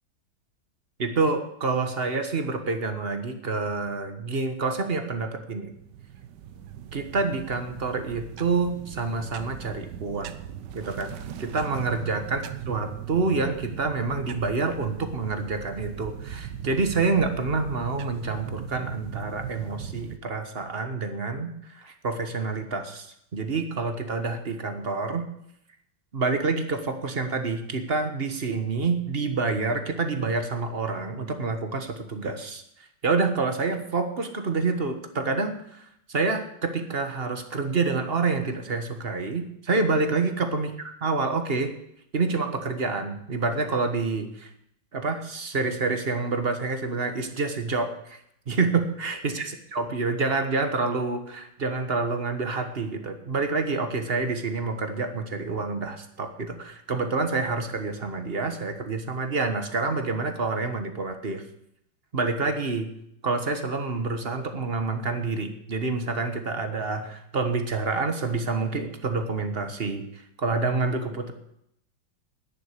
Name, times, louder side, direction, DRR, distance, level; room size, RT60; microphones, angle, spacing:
voice 1, 1.0-5.7 6.9-10.3 10.7-11.1 11.4-25.3 26.1-32.6 33.0-41.7 42.1-44.5 44.9-48.2 48.5-61.4 62.1-62.9 63.2-71.3, right 3 dB, 35° right, 7 dB, 1.5 m, -28 dB
sound 1, 5.7-20.2, right 9 dB, 70° right, 1.3 m, -39 dB
10.5 x 10.0 x 8.3 m, 0.75 s
omnidirectional pair, 2.0 m